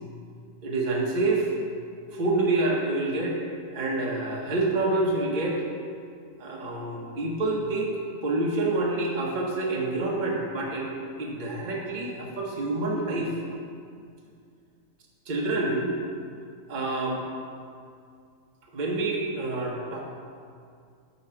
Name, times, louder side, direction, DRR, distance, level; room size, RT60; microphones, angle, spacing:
voice 1, 0.6-1.5 2.1-3.4 3.7-5.6 6.4-7.9 8.2-10.9 11.2-13.4 15.3-15.9 16.7-17.2 18.7-20.0, right 2 dB, 35° right, -2 dB, 0.9 m, -27 dB
6.8 x 4.8 x 4.4 m, 2.3 s
omnidirectional pair, 1.6 m